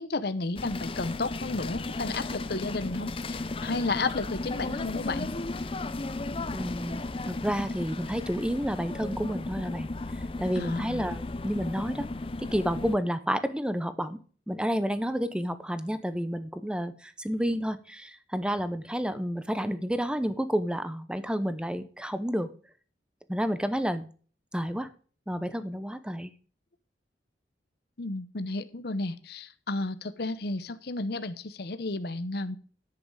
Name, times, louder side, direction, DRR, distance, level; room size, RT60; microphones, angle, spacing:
voice 1, 0.0-5.3 10.6-11.0 28.0-32.6, left 3 dB, 55° left, 12 dB, 0.8 m, -32 dB
sound 1, 0.6-13.0, left 2 dB, 30° left, 0.6 m, -35 dB
voice 2, 6.5-7.0 7.3-9.9 10.4-12.1 12.4-14.2 14.5-22.5 23.3-24.1 24.5-24.9 25.3-26.3, equal, 5° right, 12 dB, 0.8 m, -30 dB
10.5 x 7.9 x 4.8 m, 0.40 s
head